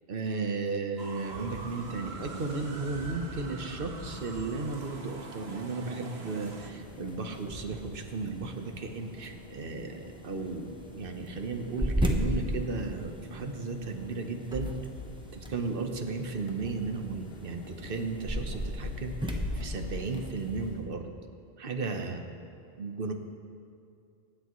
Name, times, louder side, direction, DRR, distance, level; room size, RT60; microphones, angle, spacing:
voice 1, 0.1-14.7 15.3-21.1 21.6-22.2 22.8-23.1, right 4 dB, 60° right, 4 dB, 1.2 m, -35 dB
sound 1, 1.0-6.7, right 3 dB, 80° right, 1.5 m, -44 dB
sound 2, 1.2-20.8, left 3 dB, 70° left, 1.2 m, -49 dB
sound 3, 6.0-20.8, equal, 5° right, 0.9 m, -37 dB
24.5 x 10.0 x 3.1 m, 2.4 s
omnidirectional pair, 1.1 m